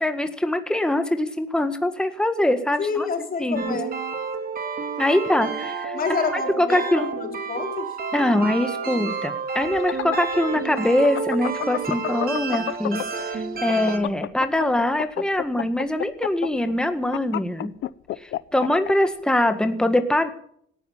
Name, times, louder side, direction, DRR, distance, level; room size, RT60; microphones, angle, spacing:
voice 1, 0.0-3.1 3.4-3.8 5.0-6.0 6.3-7.1 8.1-17.7 18.2-20.3, left 1 dB, 5° left, 8 dB, 1.8 m, -23 dB
voice 2, 2.8-3.9 5.9-8.0, left 5 dB, 45° left, 3 dB, 4.5 m, -28 dB
sound 1, 3.6-14.0, right 5 dB, 50° right, 2.9 m, -30 dB
sound 2, 9.6-13.2 13.5-18.9, left 14 dB, 75° left, 0.7 m, -29 dB
18.5 x 12.5 x 5.7 m, 0.65 s
cardioid pair, 90°, 20 cm